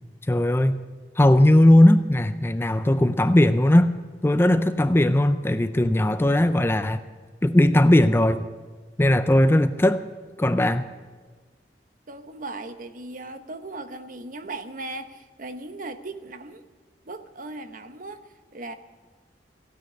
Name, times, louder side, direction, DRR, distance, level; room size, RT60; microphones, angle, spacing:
voice 1, 0.3-0.8 1.2-3.9 4.2-7.0 7.4-8.4 9.0-10.0 10.4-10.8, left 1 dB, 15° left, 11 dB, 0.4 m, -18 dB
voice 2, 12.1-16.6 17.0-18.7, right 2 dB, 50° right, 9 dB, 0.9 m, -38 dB
15.5 x 9.4 x 8.7 m, 1.4 s
head